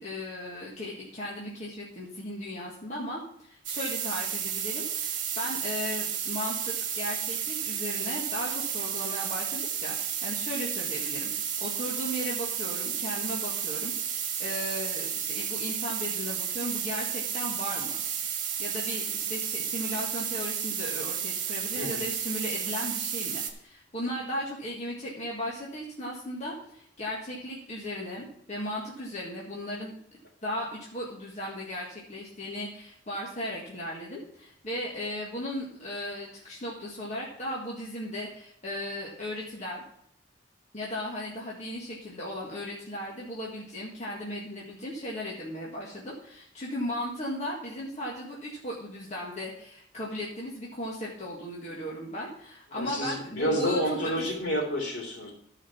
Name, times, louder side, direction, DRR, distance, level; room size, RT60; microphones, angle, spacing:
voice 1, 0.0-18.0 18.6-29.9 30.4-39.8 40.7-54.1, left 1 dB, 35° left, -5 dB, 1.8 m, -36 dB
sound 1, 3.6-23.5, right 8 dB, 50° right, 1.7 m, -32 dB
voice 2, 21.7-22.0 52.7-55.3, equal, 60° left, 0 dB, 3.4 m, -29 dB
13.5 x 5.0 x 5.8 m, 0.71 s
head